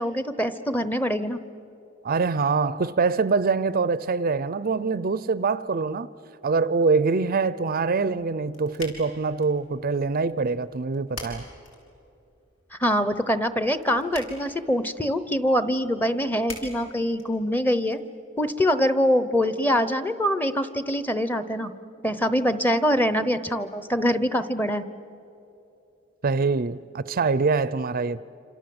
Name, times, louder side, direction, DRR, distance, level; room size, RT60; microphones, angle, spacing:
voice 1, 0.0-1.4 12.8-18.0 18.4-21.7 22.0-24.8, equal, 10° left, 0.9 m, -24 dB
voice 2, 2.0-6.1 6.4-11.5 26.2-28.2, right 4 dB, 45° right, 0.5 m, -24 dB
sound 1, 8.0-18.0, left 2 dB, 75° left, 5.6 m, -46 dB
27.5 x 27.0 x 7.9 m
head